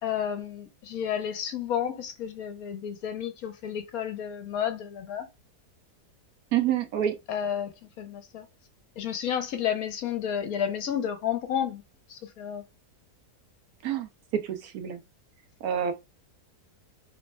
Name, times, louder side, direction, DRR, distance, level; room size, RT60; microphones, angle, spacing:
voice 1, 0.0-5.3 7.3-8.5 9.0-11.8 12.1-12.6, left 9 dB, 70° left, 1.1 m, -31 dB
voice 2, 6.5-7.2 13.8-15.0 15.6-15.9, right 10 dB, 70° right, 1.1 m, -28 dB
3.2 x 2.2 x 4.1 m
omnidirectional pair, 1.7 m